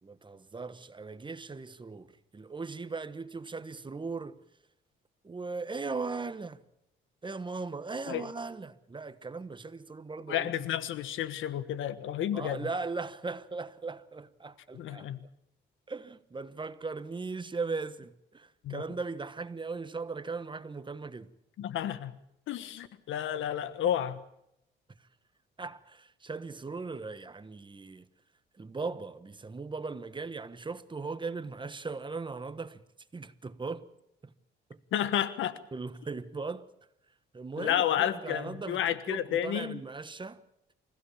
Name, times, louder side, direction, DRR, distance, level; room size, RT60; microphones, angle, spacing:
voice 1, 0.0-4.4 5.2-6.6 7.2-10.5 12.3-15.1 15.9-21.3 25.6-28.1 28.6-32.8 33.1-33.9 34.2-34.3 34.7-34.8 35.7-36.7 37.3-38.8 39.1-40.4, right 4 dB, 25° right, 1.3 m, -38 dB
voice 2, 10.3-12.6 14.7-15.2 18.6-18.8 21.6-22.1 22.5-24.2 34.9-35.5 37.6-39.8, left 10 dB, 80° left, 1.4 m, -31 dB
28.0 x 16.0 x 7.3 m
cardioid pair, 90°, 20 cm